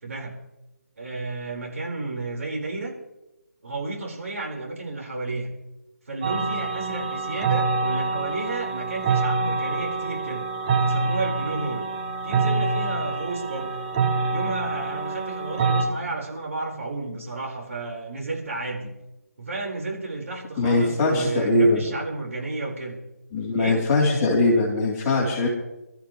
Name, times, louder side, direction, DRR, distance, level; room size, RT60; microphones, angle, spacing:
voice 1, 0.0-0.4 1.0-2.9 3.6-5.5 6.1-10.5 10.8-11.8 12.2-13.7 14.3-18.9 19.4-23.0 23.6-23.8, right 3 dB, 55° right, -1 dB, 4.7 m, -32 dB
sound 1, 6.2-15.8, right 4 dB, 25° right, 1.2 m, -26 dB
voice 2, 20.6-21.8 23.3-25.5, left 2 dB, 15° left, -4 dB, 3.4 m, -21 dB
25.0 x 13.5 x 3.2 m, 0.96 s
figure-of-eight pair, 150°, 9 cm